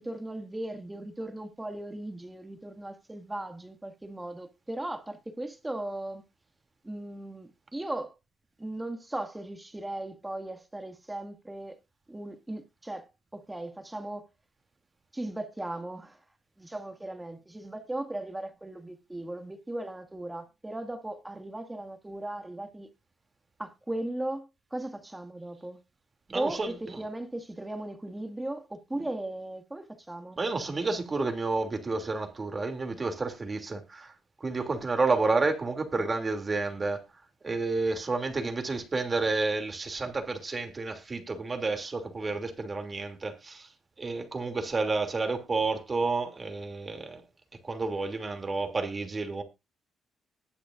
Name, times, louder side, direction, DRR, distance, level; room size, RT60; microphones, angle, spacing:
voice 1, 0.0-6.2 6.8-8.1 8.6-11.8 12.1-14.3 15.1-16.2 16.6-22.9 23.6-25.8 26.3-30.4, right 1 dB, 10° right, 2.1 m, -37 dB
voice 2, 26.3-27.1 28.9-29.1 30.4-34.1 34.4-37.0 37.4-43.7 44.0-47.2 47.6-49.4, right 3 dB, 30° right, 2.8 m, -30 dB
20.5 x 6.8 x 2.6 m
cardioid pair, 90°, 0 cm